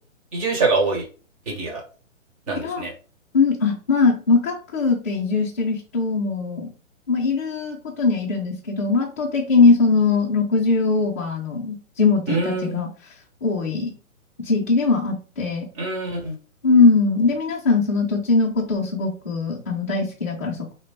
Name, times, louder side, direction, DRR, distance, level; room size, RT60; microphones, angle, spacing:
voice 1, 0.3-1.0 1.5-1.8 2.5-2.9 12.3-12.8 15.8-16.3, right 3 dB, 25° right, 0 dB, 1.4 m, -24 dB
voice 2, 2.6-2.9 3.3-6.7 7.1-12.9 13.4-13.9 14.4-15.6 16.6-20.7, left 4 dB, 10° left, -5 dB, 0.5 m, -20 dB
4.2 x 2.8 x 3.5 m, 0.37 s
hypercardioid pair, 160°, 40 cm